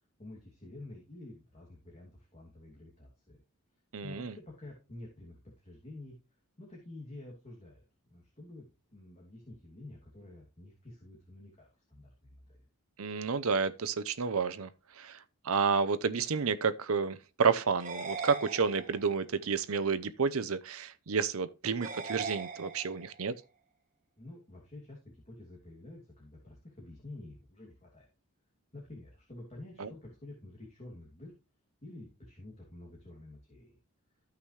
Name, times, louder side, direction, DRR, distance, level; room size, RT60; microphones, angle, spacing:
voice 1, 0.2-3.4 4.0-6.2 6.6-12.7 24.2-28.1 28.7-31.3 31.8-33.8, left 2 dB, 30° left, 2.7 m, -49 dB
voice 2, 3.9-4.3 13.0-14.7 15.0-15.2 15.4-23.3 29.8-29.9, right 5 dB, 70° right, 0.7 m, -30 dB
sound 1, 17.8-19.2 21.8-23.2, right 4 dB, 35° right, 1.4 m, -40 dB
14.0 x 5.9 x 3.3 m
head